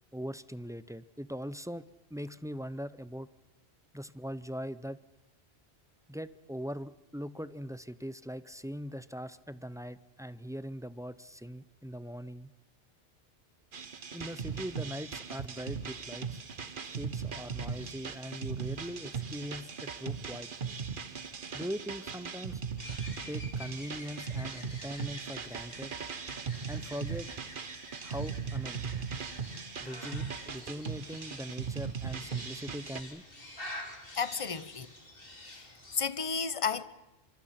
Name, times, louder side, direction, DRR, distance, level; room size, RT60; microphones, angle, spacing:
voice 1, 0.1-3.3 3.9-5.0 6.1-12.5 14.1-16.4 16.8-20.5 21.5-22.6 23.3-25.9 26.7-27.3 28.0-28.9 29.8-33.2, equal, 5° right, 0.5 m, -41 dB
sound 1, 13.7-33.0, right 6 dB, 55° right, 1.3 m, -39 dB
sound 2, 22.8-36.0, left 1 dB, 60° left, 4.3 m, -49 dB
voice 2, 34.1-34.9 35.5-35.7 35.9-36.8, left 5 dB, 35° left, 0.9 m, -32 dB
25.0 x 24.5 x 5.9 m
omnidirectional pair, 1.1 m